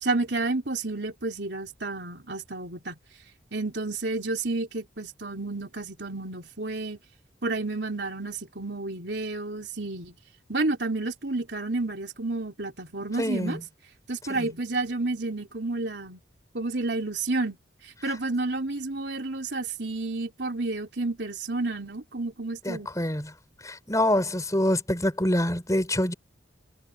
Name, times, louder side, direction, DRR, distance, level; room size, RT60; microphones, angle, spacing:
voice 1, 0.0-3.0 3.5-7.0 7.4-10.2 10.5-13.6 14.1-16.2 16.5-17.6 17.8-22.9, right 2 dB, 65° right, 4.0 m, -30 dB
voice 2, 13.2-13.6 14.3-14.5 22.6-23.3 23.6-26.1, left 1 dB, 20° left, 5.0 m, -26 dB
head